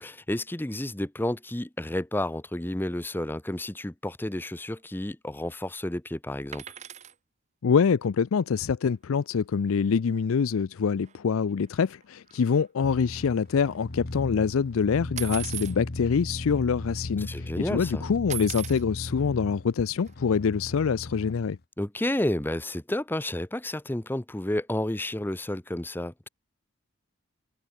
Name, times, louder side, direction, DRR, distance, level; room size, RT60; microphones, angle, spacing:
voice 1, 0.0-6.6 17.2-18.0 21.8-26.3, left 1 dB, 10° left, 0.6 m, -31 dB
sound 1, 6.5-7.1 9.3-9.4 9.7-9.9 10.1-10.2 11.0-11.1 11.6-13.8 15.2-15.8 16.5-16.6 16.9-17.3 18.3-18.8 20.0-20.1, right 12 dB, 30° right, 0.9 m, -38 dB
voice 2, 7.6-21.6, left 6 dB, 75° left, 0.4 m, -25 dB
sound 2, 12.8-21.5, left 2 dB, 45° left, 1.1 m, -38 dB
head